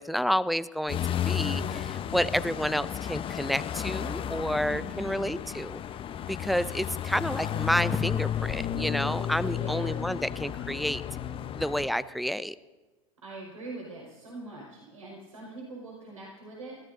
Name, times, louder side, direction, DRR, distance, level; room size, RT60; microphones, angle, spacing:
voice 1, 0.0-5.8 6.3-11.0 11.6-12.5, equal, ahead, 15 dB, 0.4 m, -30 dB
sound 1, 0.9-11.9, left 9 dB, 30° left, 0.9 m, -32 dB
voice 2, 4.6-5.4 9.5-10.0 13.2-16.8, right 2 dB, 90° right, -4 dB, 5.3 m, -43 dB
26.5 x 15.5 x 2.7 m, 1.2 s
hypercardioid pair, 90°, 17 cm